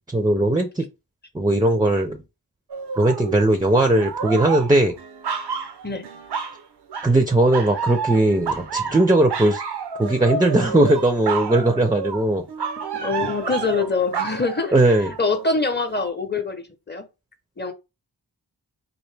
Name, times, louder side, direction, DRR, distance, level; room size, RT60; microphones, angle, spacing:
voice 1, 0.1-0.9 1.3-2.2 3.0-5.0 7.0-9.6 10.0-12.5 14.7-15.1, right 1 dB, 10° right, 0.5 m, -19 dB
sound 1, 2.7-3.5 3.9-6.6 6.9-7.2 7.5-15.4 15.9-16.1, right 6 dB, 80° right, 0.6 m, -30 dB
voice 2, 13.0-14.7 15.2-17.1 17.6-17.7, left 4 dB, 25° left, 0.8 m, -24 dB
4.0 x 2.6 x 3.3 m
wide cardioid pair, 75°, 39 cm